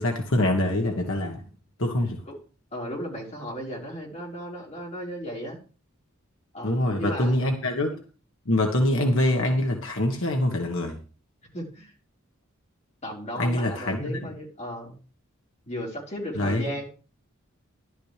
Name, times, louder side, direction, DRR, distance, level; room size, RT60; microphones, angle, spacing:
voice 1, 0.0-1.4 1.8-2.2 6.6-8.0 8.5-11.0 13.4-14.2 16.3-16.6, left 1 dB, 75° left, 3 dB, 1.5 m, -24 dB
voice 2, 2.7-5.6 6.5-7.4 11.5-11.9 13.0-15.0 15.7-16.8, equal, 35° left, -2 dB, 4.5 m, -35 dB
13.0 x 12.0 x 3.3 m, 0.37 s
head